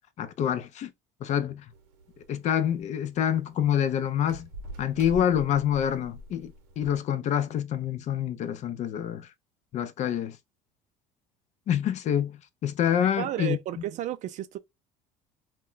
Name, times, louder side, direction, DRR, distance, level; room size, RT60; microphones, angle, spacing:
voice 1, 0.2-0.9 1.2-1.6 2.3-4.5 4.8-9.3 9.7-10.4 11.7-13.6, left 9 dB, 50° left, 0.5 m, -27 dB
sound 1, 1.7-7.0, right 2 dB, 85° right, 0.7 m, -45 dB
voice 2, 13.2-14.6, right 12 dB, 50° right, 0.4 m, -32 dB
2.2 x 2.1 x 3.7 m
supercardioid pair, 90°, 15 cm